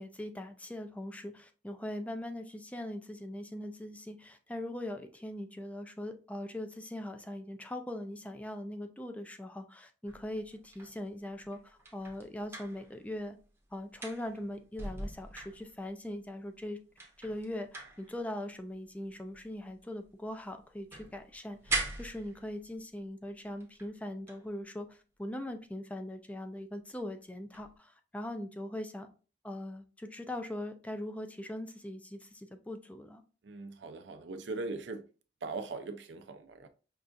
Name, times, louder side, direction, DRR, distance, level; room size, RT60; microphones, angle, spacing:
voice 1, 0.0-13.4 13.7-16.8 17.2-29.1 29.4-33.2, left 1 dB, 10° left, 0.4 m, -41 dB
sound 1, 10.1-13.4 13.7-16.1 16.6-16.7 16.9-20.3 20.6-22.8 23.6-24.0 24.3-24.5 27.5-27.7, right 3 dB, 15° right, 0.7 m, -42 dB
voice 2, 33.4-35.0 35.4-36.7, right 3 dB, 85° right, 0.5 m, -40 dB
5.3 x 2.4 x 2.5 m
head